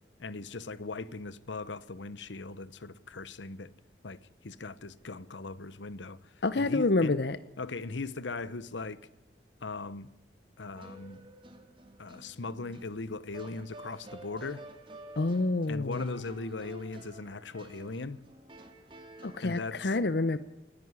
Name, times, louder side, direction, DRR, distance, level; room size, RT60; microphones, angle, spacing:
voice 1, 0.2-3.7 4.0-4.2 4.4-6.2 6.6-7.1 7.6-9.0 9.6-10.1 10.6-11.2 12.0-14.6 15.7-18.2 19.4-19.9, left 3 dB, 85° left, 0.9 m, -39 dB
voice 2, 6.4-7.4 15.2-16.2 19.2-20.4, left 2 dB, 65° left, 0.7 m, -28 dB
sound 1, 10.7-19.6, right 1 dB, 25° right, 2.5 m, -50 dB
29.0 x 10.5 x 9.7 m
head